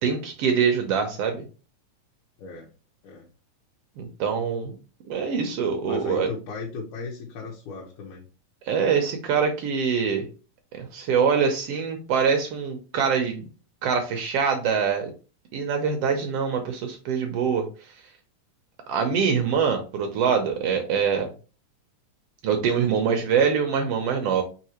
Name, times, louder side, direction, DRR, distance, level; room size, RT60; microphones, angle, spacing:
voice 1, 0.0-1.4 4.0-4.7 5.1-6.3 8.7-10.3 10.8-13.5 13.8-15.1 15.5-17.7 18.9-21.3 22.4-24.4, right 6 dB, 75° right, 4 dB, 1.4 m, -24 dB
voice 2, 2.4-2.7 3.0-3.3 5.8-8.3, left 4 dB, 85° left, -2 dB, 2.4 m, -36 dB
4.8 x 3.7 x 2.9 m, 0.34 s
omnidirectional pair, 3.4 m